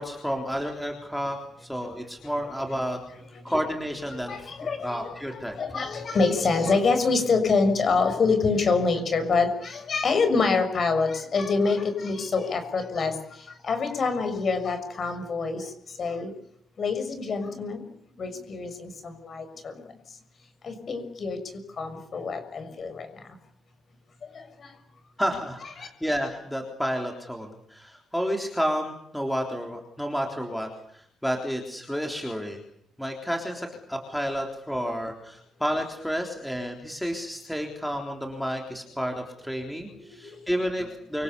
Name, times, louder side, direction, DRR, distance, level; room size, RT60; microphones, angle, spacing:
voice 1, 0.0-3.0 3.4-4.5 4.8-5.6 25.2-32.6 33.0-41.2, equal, ahead, 2 dB, 3.6 m, -31 dB
voice 2, 4.1-13.1 13.6-15.7 16.0-16.3 16.8-17.8 18.2-19.7 20.6-21.4 21.8-23.1 24.3-24.4 25.8-25.9 40.2-40.3, left 4 dB, 35° left, 8 dB, 6.4 m, -26 dB
29.0 x 25.5 x 7.0 m, 0.72 s
cardioid pair, 170°, 0 cm